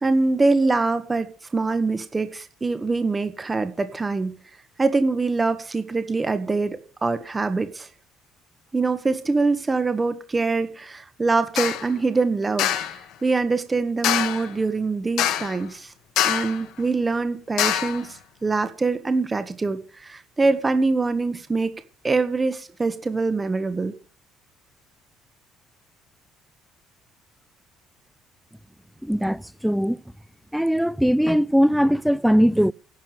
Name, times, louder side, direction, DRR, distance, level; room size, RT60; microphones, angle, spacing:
voice 1, 0.0-4.3 4.8-7.9 8.7-12.7 13.2-15.9 16.2-21.7 22.0-23.9, right 3 dB, 25° right, 1.6 m, -24 dB
sound 1, 11.6-11.9 12.6-13.0 14.0-14.5 15.2-15.6 16.2-16.6 17.6-18.0, left 11 dB, 70° left, 1.5 m, -24 dB
voice 2, 29.0-30.0 30.5-32.7, equal, ahead, 0.5 m, -20 dB
11.5 x 7.5 x 9.3 m
hypercardioid pair, 65°, 0 cm